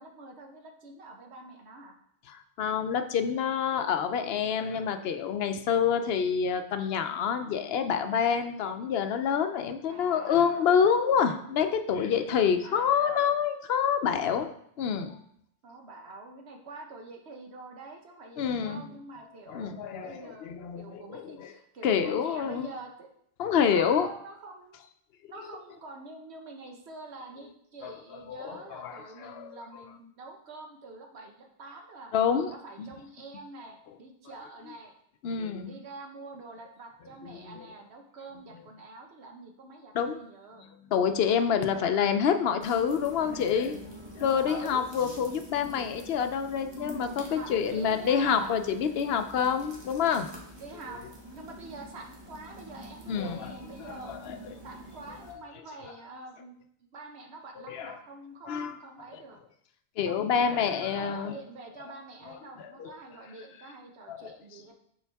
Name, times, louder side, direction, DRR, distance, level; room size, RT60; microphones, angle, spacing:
voice 1, 0.0-1.9 9.9-10.7 12.6-13.2 15.6-20.5 20.8-23.1 23.7-24.8 25.3-32.1 32.5-34.9 35.6-40.7 41.7-42.1 44.4-44.8 47.3-48.6 50.6-54.2 54.6-56.6 56.9-59.4 60.1-64.7, right 3 dB, 90° right, 2 dB, 1.2 m, -46 dB
voice 2, 2.3-14.5 14.8-15.2 18.4-18.8 19.5-21.5 21.8-22.7 23.4-24.1 25.2-25.3 27.8-27.9 28.3-29.5 32.1-32.5 32.8-32.9 35.2-35.7 37.2-37.6 39.9-40.2 40.9-43.8 44.2-50.3 53.1-54.4 57.6-57.9 58.5-58.8 60.0-61.4 62.6-62.9 64.1-64.3, left 7 dB, 75° left, 8 dB, 0.8 m, -27 dB
sound 1, 42.6-55.3, equal, 25° right, 1.2 m, -46 dB
7.1 x 4.6 x 3.4 m, 0.70 s
omnidirectional pair, 1.1 m